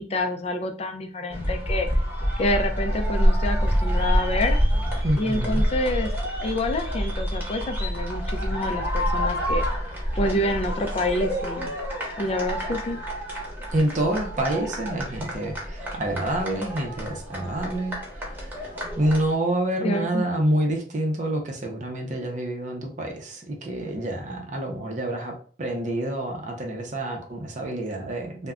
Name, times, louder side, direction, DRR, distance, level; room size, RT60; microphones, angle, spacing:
voice 1, 0.0-1.9 2.4-4.6 5.2-6.1 6.4-9.6 10.2-11.7 12.2-13.0 19.8-20.2, left 1 dB, 35° left, 6 dB, 0.4 m, -27 dB
sound 1, 1.3-19.3, equal, 10° right, 0.9 m, -27 dB
voice 2, 5.0-5.6 13.7-18.7 19.0-28.5, right 1 dB, 45° right, 1 dB, 0.6 m, -27 dB
2.3 x 2.1 x 3.5 m, 0.42 s
head